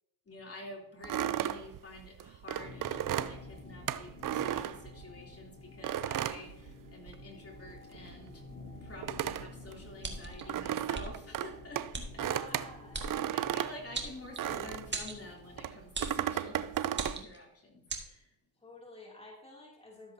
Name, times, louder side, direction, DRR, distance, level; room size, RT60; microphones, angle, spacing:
voice 1, 0.3-8.4 8.8-12.3 13.3-18.4, left 2 dB, 35° left, -1 dB, 3.1 m, -49 dB
sound 1, 1.0-5.3 5.8-7.3 7.6-15.0 15.6-17.2, right 11 dB, 50° right, 0.6 m, -35 dB
sound 2, 2.5-15.8, left 4 dB, 80° left, 3.0 m, -52 dB
sound 3, 10.0-10.4 10.9-11.1 11.9-12.1 12.9-13.1 13.9-14.5 14.9-15.2 15.9-16.2 16.9-17.4 17.9-18.1, right 3 dB, 25° right, 2.0 m, -37 dB
voice 2, 12.2-13.1 18.6-20.1, left 1 dB, 15° left, -2 dB, 2.8 m, -50 dB
13.5 x 7.4 x 2.8 m, 0.84 s
supercardioid pair, 65°, 41 cm